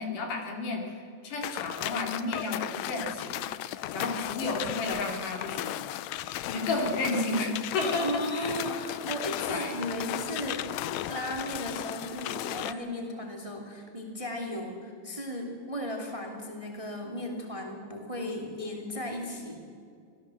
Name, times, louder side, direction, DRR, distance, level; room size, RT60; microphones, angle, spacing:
voice 1, 0.0-5.8 6.5-8.6 9.5-9.7, left 2 dB, 70° left, 2 dB, 4.2 m, -32 dB
sound 1, 1.4-12.7, left 13 dB, 85° left, 1.5 m, -35 dB
voice 2, 7.8-10.7 11.1-19.6, left 1 dB, 10° right, 2 dB, 2.4 m, -35 dB
25.0 x 17.5 x 7.8 m, 2.3 s
omnidirectional pair, 3.9 m